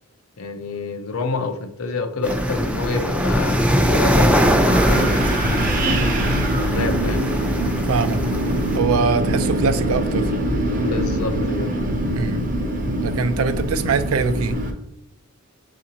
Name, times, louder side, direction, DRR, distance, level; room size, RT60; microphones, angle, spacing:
voice 1, 0.4-5.8 6.6-7.3 10.9-11.8, left 3 dB, 85° left, 7 dB, 0.6 m, -28 dB
sound 1, 2.2-8.8, equal, 5° right, 0.4 m, -21 dB
Wind, 4.4-14.7, right 1 dB, 40° right, 0.7 m, -23 dB
voice 2, 7.8-8.2 8.7-10.3 12.1-12.4 13.0-14.6, right 5 dB, 75° right, 11 dB, 0.4 m, -22 dB
7.3 x 2.5 x 2.8 m, 0.81 s
head